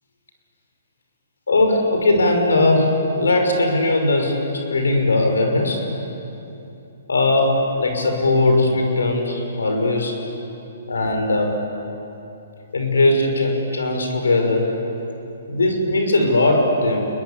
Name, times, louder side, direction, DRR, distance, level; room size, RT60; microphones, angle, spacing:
voice 1, 1.5-5.8 7.1-10.2 10.9-11.6 12.7-14.7 15.5-17.1, left 2 dB, 85° left, 3 dB, 5.9 m, -19 dB
30.0 x 21.5 x 8.5 m, 2.9 s
hypercardioid pair, 140°, 0 cm